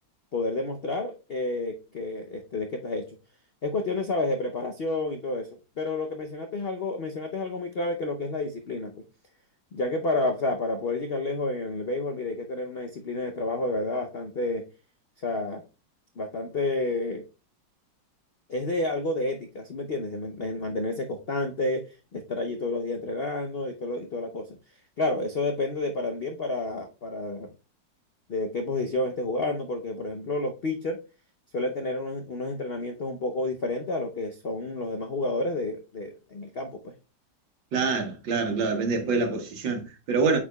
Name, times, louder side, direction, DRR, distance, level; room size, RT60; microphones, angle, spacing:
voice 1, 0.3-3.1 3.6-5.5 5.8-9.0 9.7-14.6 15.2-15.6 16.2-17.2 18.5-21.9 22.1-24.5 25.0-27.5 28.3-31.0 31.5-36.9, left 2 dB, 70° left, 0.5 m, -30 dB
voice 2, 37.7-40.4, right 4 dB, 80° right, 1.9 m, -26 dB
8.5 x 4.9 x 2.3 m
omnidirectional pair, 2.0 m